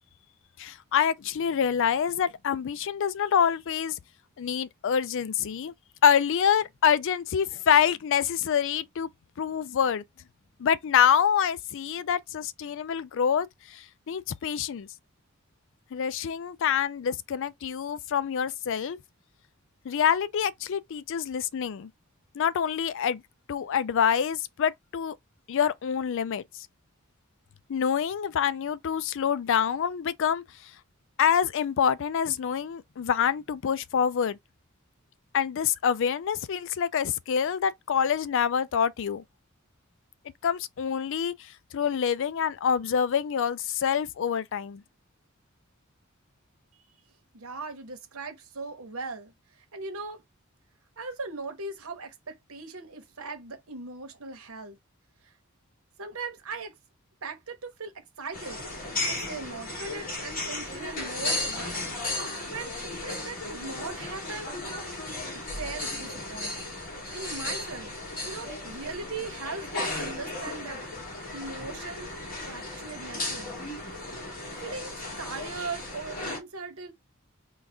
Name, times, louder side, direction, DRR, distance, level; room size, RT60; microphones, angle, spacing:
voice 1, 0.6-3.9 4.4-5.7 6.0-9.1 9.4-10.0 10.6-14.9 15.9-19.0 19.9-21.9 22.4-23.2 23.5-25.2 25.5-26.4 27.7-30.4 31.2-34.4 35.3-39.2 40.4-41.3 41.7-44.8, left 8 dB, 65° left, 0.4 m, -26 dB
voice 2, 47.3-50.2 51.0-54.8 55.2-55.3 56.0-56.7 57.2-58.6 59.0-62.0 62.5-64.6 65.3-66.7 67.1-67.9 68.2-70.8 71.3-72.1 72.5-73.6 74.6-76.9, right 3 dB, 85° right, 1.1 m, -39 dB
sound 1, 58.3-76.4, left 2 dB, 45° left, 2.0 m, -35 dB
3.9 x 2.3 x 3.5 m
head